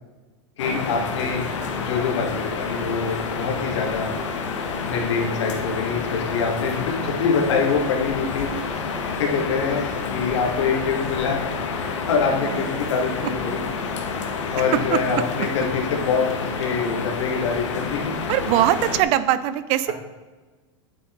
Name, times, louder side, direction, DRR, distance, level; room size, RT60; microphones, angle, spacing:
sound 1, 0.6-19.0, left 5 dB, 90° left, 1.6 m, -29 dB
voice 1, 0.6-1.5 1.7-4.1 4.8-8.5 9.1-11.4 12.1-13.6 14.5-18.1, left 5 dB, 75° left, 0 dB, 2.5 m, -25 dB
voice 2, 14.6-15.5 18.3-19.9, right 13 dB, 40° right, 14 dB, 0.5 m, -22 dB
9.3 x 7.7 x 4.0 m, 1.3 s
supercardioid pair, 140°, 15 cm